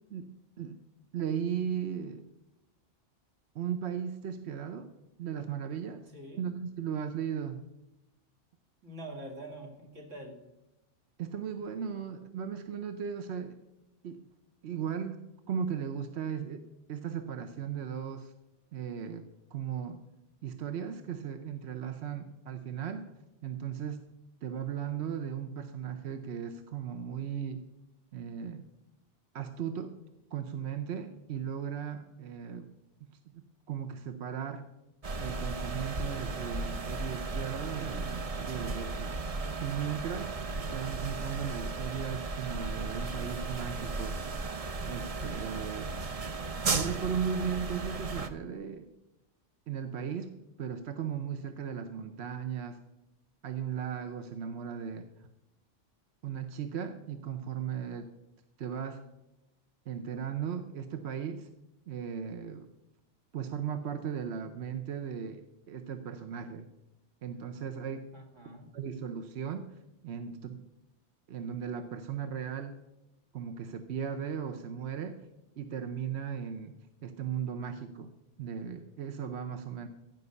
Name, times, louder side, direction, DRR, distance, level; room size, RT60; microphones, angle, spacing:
voice 1, 0.1-0.8 1.1-2.2 3.5-4.9 5.2-6.1 6.4-7.6 11.2-13.5 14.0-14.2 14.6-15.2 15.5-16.6 16.9-18.3 18.7-20.0 20.4-23.1 23.4-24.0 24.4-27.6 28.1-28.7 29.3-29.9 30.3-32.7 33.0-33.4 33.7-34.6 35.2-39.1 39.6-40.3 40.7-44.2 44.8-45.9 46.7-48.9 49.7-50.3 50.6-52.8 53.4-55.1 56.2-58.1 58.6-59.0 59.9-61.5 61.9-62.7 63.3-65.4 65.7-66.7 67.2-68.0 68.7-69.8 70.0-70.6 71.3-72.8 73.3-75.2 75.6-76.7 77.0-78.1 78.4-79.9, right 7 dB, 65° right, 9 dB, 1.0 m, -36 dB
voice 2, 8.8-10.4 68.1-68.7, right 1 dB, 80° right, 1 dB, 2.8 m, -45 dB
sound 1, 35.0-48.3, right 3 dB, 35° right, 0.7 m, -35 dB
15.0 x 5.4 x 8.2 m, 0.94 s
omnidirectional pair, 1.3 m